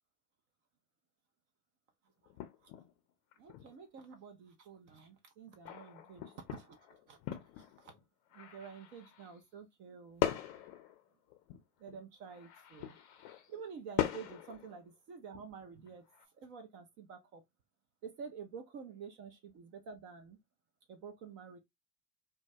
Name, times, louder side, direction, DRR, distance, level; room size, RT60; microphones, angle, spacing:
sound 1, 2.3-2.9 3.3-3.7 5.6-8.0 8.3-9.4 10.2-12.0 12.3-13.6 14.0-14.8 15.3-15.4 15.9-16.2, left 12 dB, 40° left, 0.6 m, -40 dB
voice 1, 3.4-6.2 6.5-7.2 7.6-8.0 8.3-10.3 11.8-13.0 13.5-17.4 18.0-20.4 20.9-21.6, right 6 dB, 25° right, 0.4 m, -49 dB
2.2 x 2.2 x 2.5 m
figure-of-eight pair, 85°, 47 cm